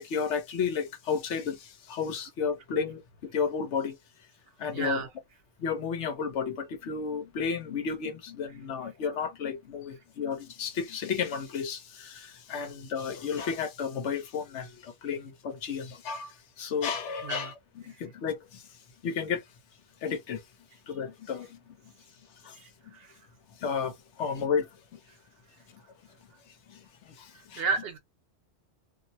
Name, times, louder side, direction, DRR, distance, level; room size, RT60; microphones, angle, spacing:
voice 1, 0.0-4.0 4.6-5.0 5.6-18.6 19.0-19.4 20.0-20.4 20.9-21.8 22.4-22.6 22.8-22.9 23.6-25.0 26.7-27.6, left 6 dB, 85° left, 1.0 m, -33 dB
voice 2, 4.7-5.1 17.2-17.5 22.6-23.1 27.6-28.0, right 4 dB, 65° right, 0.9 m, -32 dB
2.5 x 2.0 x 2.6 m
omnidirectional pair, 1.2 m